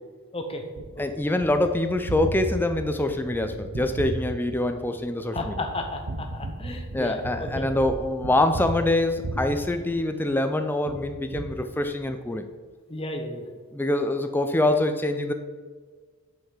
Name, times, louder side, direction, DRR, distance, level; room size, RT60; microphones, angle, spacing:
Gunshot gunfire, 0.8-10.4 10.9-12.3, right 2 dB, 80° right, 0.7 m, -35 dB
voice 1, 1.0-5.6 6.9-12.5 13.7-15.3, left 1 dB, 10° left, 8 dB, 0.4 m, -25 dB
voice 2, 5.3-7.7 12.9-13.4, left 2 dB, 25° left, 3 dB, 0.8 m, -33 dB
5.8 x 5.4 x 4.9 m, 1.5 s
head